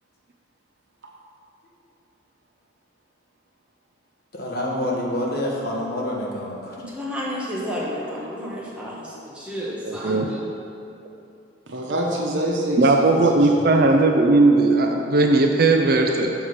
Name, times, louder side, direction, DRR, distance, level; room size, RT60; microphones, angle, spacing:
voice 1, 4.3-6.7, left 1 dB, 55° left, -3 dB, 1.3 m, -27 dB
voice 2, 6.9-10.4, equal, 5° right, -7 dB, 1.3 m, -31 dB
voice 3, 9.8-10.3 12.8-16.3, right 2 dB, 55° right, 3 dB, 0.5 m, -17 dB
voice 4, 11.7-13.8, right 1 dB, 85° right, -1 dB, 1.1 m, -26 dB
7.1 x 4.9 x 5.5 m, 2.6 s
head